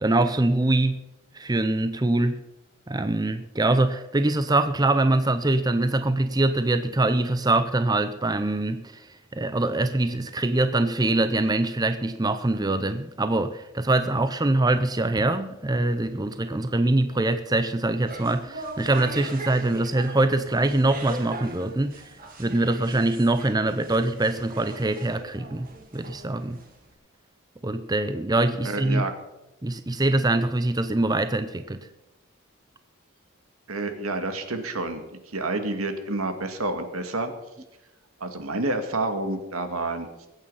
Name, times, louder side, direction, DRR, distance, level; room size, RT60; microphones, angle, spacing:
voice 1, 0.0-1.0 1.3-2.4 2.9-22.1 22.4-26.6 27.6-29.1 29.6-31.8, right 2 dB, 20° right, 0.6 m, -24 dB
sound 1, 17.9-26.9, right 2 dB, 40° right, 2.1 m, -41 dB
voice 2, 28.6-29.1 33.7-37.3 38.2-40.3, right 2 dB, 80° right, 2.0 m, -29 dB
21.5 x 8.7 x 5.6 m
head